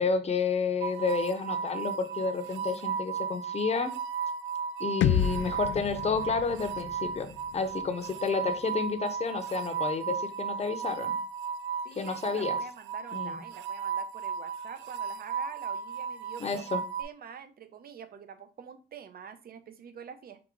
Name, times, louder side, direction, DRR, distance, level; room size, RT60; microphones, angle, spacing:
voice 1, 0.0-3.9 4.8-7.3 7.5-11.1 12.0-12.6 13.1-13.4 16.4-16.8, left 4 dB, 30° left, 8 dB, 0.8 m, -30 dB
sound 1, 0.8-17.0, right 6 dB, 85° right, 0.4 m, -35 dB
sound 2, 5.0-8.9, left 9 dB, 75° left, 0.4 m, -32 dB
voice 2, 11.8-16.6 17.0-20.5, right 7 dB, 50° right, 10 dB, 0.7 m, -46 dB
4.8 x 2.5 x 3.7 m, 0.34 s
cardioid pair, 90°, 20 cm